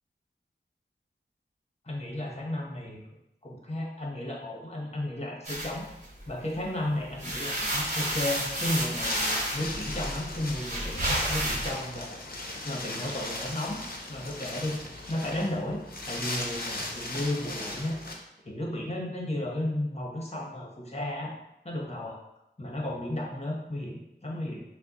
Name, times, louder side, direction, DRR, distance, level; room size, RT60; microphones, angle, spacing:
voice 1, 1.8-3.0 3.4-5.9 6.3-12.2 12.6-13.8 14.1-18.0 18.4-21.3 21.6-22.2 22.6-24.6, left 1 dB, 35° left, -2 dB, 1.0 m, -33 dB
sound 1, 5.5-6.6 7.0-11.7, right 1 dB, 40° right, 1.3 m, -31 dB
Wind, 6.9-18.1, left 2 dB, 50° left, 0.7 m, -38 dB
6.2 x 2.2 x 2.9 m, 0.86 s
wide cardioid pair, 45°, 19 cm